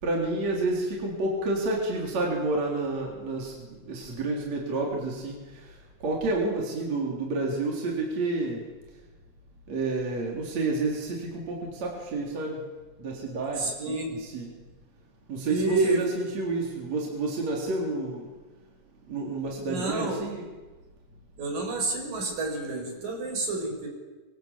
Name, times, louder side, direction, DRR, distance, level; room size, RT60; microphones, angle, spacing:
voice 1, 0.0-8.6 9.7-12.6 13.0-14.5 15.3-18.3 19.1-20.4, right 2 dB, 50° right, -1 dB, 5.0 m, -30 dB
voice 2, 13.6-14.1 15.5-16.0 19.6-20.2 21.4-23.9, right 2 dB, 70° right, 3 dB, 7.1 m, -29 dB
26.5 x 25.0 x 8.4 m, 1.2 s
omnidirectional pair, 4.1 m